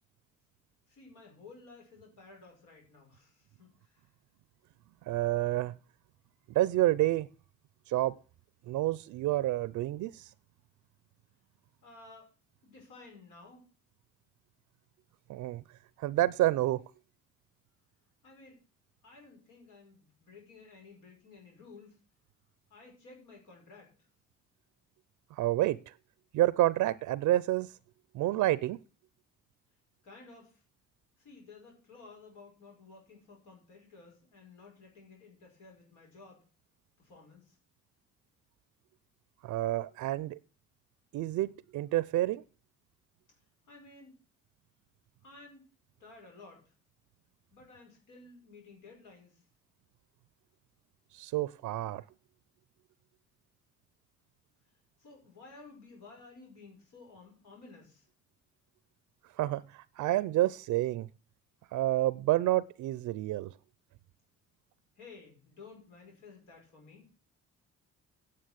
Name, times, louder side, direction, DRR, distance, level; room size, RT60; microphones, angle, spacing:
voice 1, 0.9-4.1 11.8-12.3 12.6-13.7 18.2-18.6 19.0-22.0 22.7-23.9 30.0-30.6 31.2-36.4 37.0-37.6 43.7-44.2 45.2-45.7 46.0-46.7 47.5-49.4 55.0-58.1 65.0-67.1, left 3 dB, 85° left, 5.3 m, -54 dB
voice 2, 5.1-5.7 6.5-7.3 7.9-8.2 8.7-10.3 15.3-15.6 16.0-16.8 25.3-25.9 26.3-27.7 28.1-28.8 39.4-40.4 41.1-42.4 51.1-52.0 59.4-61.1 61.7-63.5, right 15 dB, 80° right, 0.5 m, -29 dB
9.5 x 7.1 x 6.3 m
cardioid pair, 90°, 30 cm